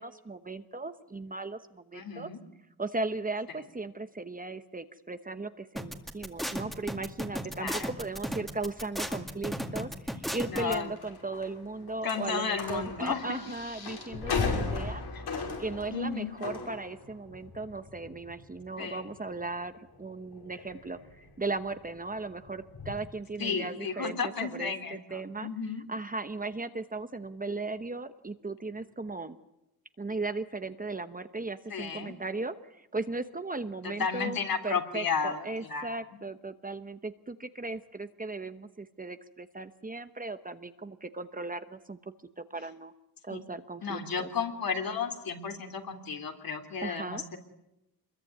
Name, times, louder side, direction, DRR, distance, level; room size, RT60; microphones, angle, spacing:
voice 1, 0.0-2.3 2.8-15.0 15.6-25.5 25.9-29.4 30.0-34.4 34.6-42.0 42.4-42.9 43.2-44.0 46.8-47.2, right 3 dB, 20° right, 10 dB, 1.0 m, -37 dB
voice 2, 1.9-2.4 7.6-7.9 10.5-10.9 12.0-13.4 15.1-15.2 15.9-16.3 18.8-19.0 23.4-25.8 31.7-32.2 33.8-36.2 43.3-43.4 43.8-47.4, left 5 dB, 65° left, 5 dB, 3.4 m, -33 dB
sound 1, 5.8-10.7, equal, ahead, 2.1 m, -34 dB
sound 2, 11.0-22.9, left 4 dB, 90° left, 6.3 m, -38 dB
27.5 x 22.0 x 9.5 m, 0.91 s
wide cardioid pair, 170°, 38 cm